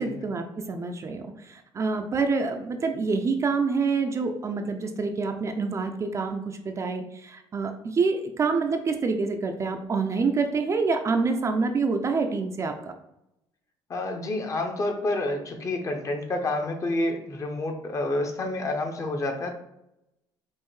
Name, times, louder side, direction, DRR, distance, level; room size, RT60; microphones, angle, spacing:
voice 1, 0.0-12.9, right 4 dB, 30° right, 5 dB, 0.4 m, -27 dB
voice 2, 13.9-19.5, left 2 dB, 30° left, 4 dB, 0.7 m, -29 dB
5.4 x 2.6 x 3.1 m, 0.83 s
cardioid pair, 125°, 10 cm